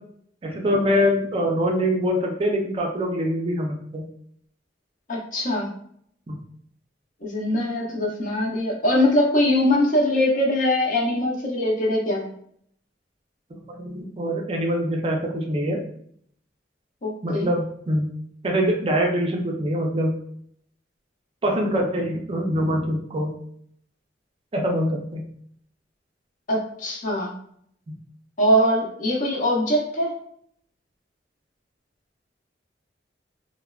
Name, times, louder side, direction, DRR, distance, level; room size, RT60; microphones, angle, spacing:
voice 1, 0.4-4.1 6.3-6.4 13.7-15.8 17.2-18.1 18.4-20.2 21.4-23.3 24.5-25.3 27.9-28.0, equal, 30° right, 1 dB, 0.4 m, -24 dB
voice 2, 5.1-5.7 7.2-12.3 17.0-17.5 26.5-27.3 28.4-30.1, left 1 dB, 45° left, -2 dB, 0.6 m, -22 dB
3.2 x 2.0 x 2.3 m, 0.66 s
head